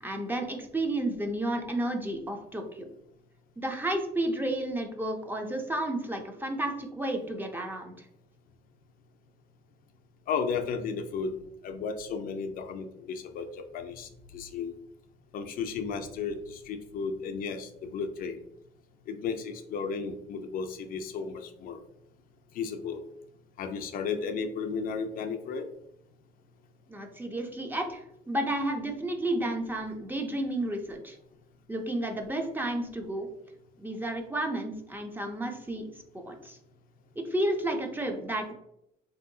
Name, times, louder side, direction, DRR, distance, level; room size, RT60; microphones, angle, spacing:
voice 1, 0.0-2.9 3.6-8.1 26.9-31.2 31.7-33.3 33.8-35.9 36.1-36.6 37.2-38.5, right 1 dB, 10° right, 3 dB, 0.5 m, -32 dB
voice 2, 10.3-11.3 11.6-14.7 15.3-18.4 19.1-21.8 22.5-23.0 23.6-25.7, left 5 dB, 60° left, 7 dB, 0.4 m, -34 dB
3.0 x 2.7 x 2.6 m, 0.80 s
cardioid pair, 110°, 17 cm